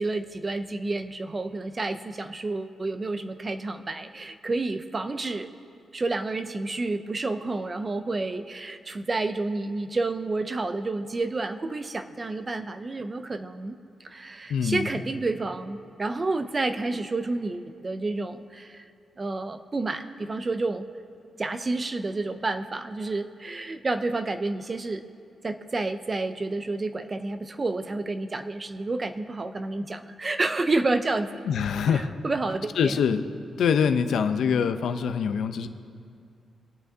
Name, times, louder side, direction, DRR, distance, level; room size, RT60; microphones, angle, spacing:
voice 1, 0.0-5.5 5.9-13.8 14.0-18.8 19.2-20.9 21.4-25.0 25.4-33.0, right 3 dB, 25° right, 9 dB, 0.4 m, -30 dB
voice 2, 14.5-14.9 31.5-32.1 32.8-33.2 33.6-35.7, left 7 dB, 75° left, 9 dB, 0.6 m, -24 dB
25.5 x 8.9 x 2.7 m, 2.4 s
wide cardioid pair, 170°, 0 cm